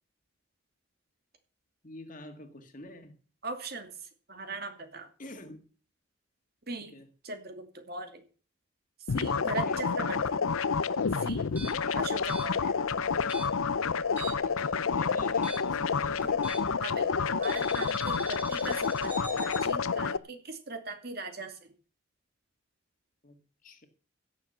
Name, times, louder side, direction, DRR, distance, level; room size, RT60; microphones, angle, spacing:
voice 1, 1.8-3.1 5.2-5.7 6.9-7.1 9.5-9.8 11.7-12.0 14.4-16.6 23.2-23.9, left 1 dB, 40° left, 2.1 m, -48 dB
voice 2, 3.4-5.1 6.7-7.0 7.2-8.3 9.1-10.4 11.2-11.5 12.0-12.8 16.8-21.7, right 3 dB, 50° right, 2.5 m, -40 dB
sound 1, 9.1-20.2, left 5 dB, 90° left, 0.6 m, -29 dB
sound 2, 11.4-14.6 14.8-16.9 17.4-19.6, right 1 dB, 10° right, 4.0 m, -42 dB
16.0 x 7.4 x 6.7 m
head